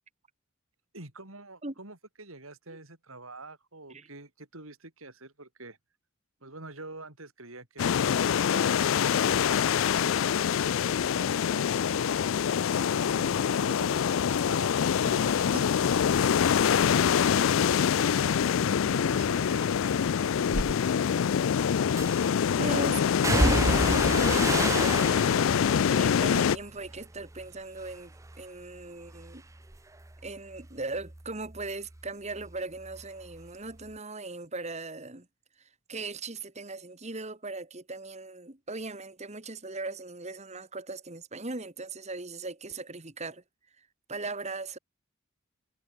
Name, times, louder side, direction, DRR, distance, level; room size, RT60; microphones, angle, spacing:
voice 1, 0.9-5.8 6.4-9.3 9.9-12.2 12.8-16.5 16.8-20.8, right 2 dB, 85° right, 6.0 m, -46 dB
sound 1, 7.8-26.6, left 7 dB, 70° left, 0.4 m, -25 dB
sound 2, 20.5-20.7 22.0-22.4 23.2-27.5 27.8-28.4 28.8-32.1 32.3-33.5 33.8-33.9, right 2 dB, 15° right, 0.6 m, -32 dB
voice 2, 22.6-29.4 30.2-35.3 35.9-43.4 44.1-44.8, right 3 dB, 35° right, 2.3 m, -39 dB
head